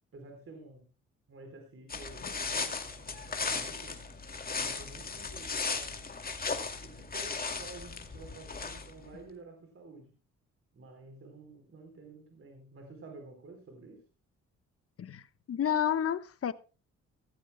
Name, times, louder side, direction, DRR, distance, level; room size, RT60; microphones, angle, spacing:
voice 1, 0.1-0.9 1.3-4.0 4.5-6.1 6.8-10.2 10.7-14.0, right 3 dB, 45° right, 4.1 m, -51 dB
sound 1, 1.9-9.0, left 4 dB, 30° left, 2.4 m, -36 dB
voice 2, 15.5-16.5, left 9 dB, 50° left, 1.2 m, -30 dB
16.5 x 15.0 x 2.2 m
cardioid pair, 90°, 30 cm